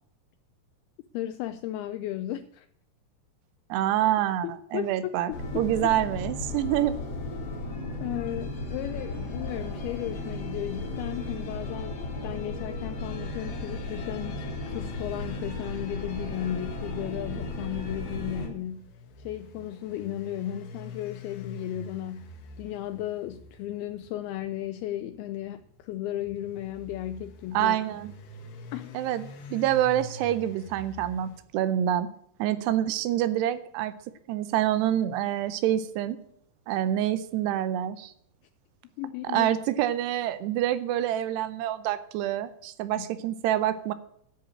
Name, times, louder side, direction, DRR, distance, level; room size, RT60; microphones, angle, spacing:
voice 1, 1.1-2.7 4.4-5.9 7.8-18.9 19.2-27.8 28.7-28.9 39.0-39.5 43.0-43.1, left 13 dB, 85° left, 9 dB, 2.2 m, -35 dB
voice 2, 3.7-6.9 27.5-28.1 28.9-32.1 32.4-33.9 34.3-36.2 36.7-38.1 39.3-43.9, right 12 dB, 80° right, 12 dB, 2.7 m, -27 dB
sound 1, 5.3-18.5, left 2 dB, 50° left, 2.1 m, -35 dB
sound 2, 17.2-31.4, left 2 dB, 65° left, 2.2 m, -46 dB
10.5 x 7.0 x 8.6 m, 0.68 s
omnidirectional pair, 5.0 m